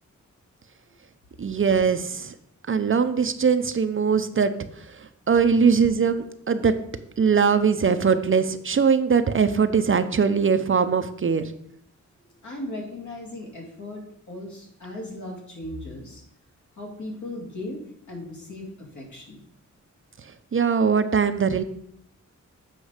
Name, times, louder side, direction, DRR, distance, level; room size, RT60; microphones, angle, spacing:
voice 1, 1.4-2.3 2.7-4.5 5.3-6.7 7.2-11.5 20.5-21.6, right 6 dB, 40° right, 10 dB, 0.6 m, -21 dB
voice 2, 12.2-16.2 16.8-19.4, left 1 dB, 65° left, -1 dB, 2.7 m, -37 dB
8.0 x 5.3 x 4.9 m, 0.69 s
wide cardioid pair, 100°, 31 cm